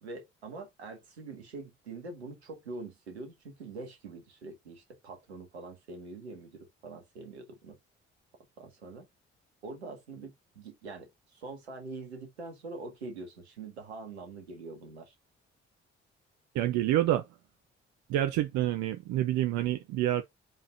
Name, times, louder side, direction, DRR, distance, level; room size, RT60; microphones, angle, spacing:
voice 1, 0.0-7.8 8.6-9.1 9.6-15.1, right 3 dB, 80° right, 1.8 m, -44 dB
voice 2, 16.5-17.3 18.1-20.2, right 13 dB, 60° right, 0.8 m, -27 dB
7.5 x 5.0 x 2.6 m
figure-of-eight pair, 40°, 32 cm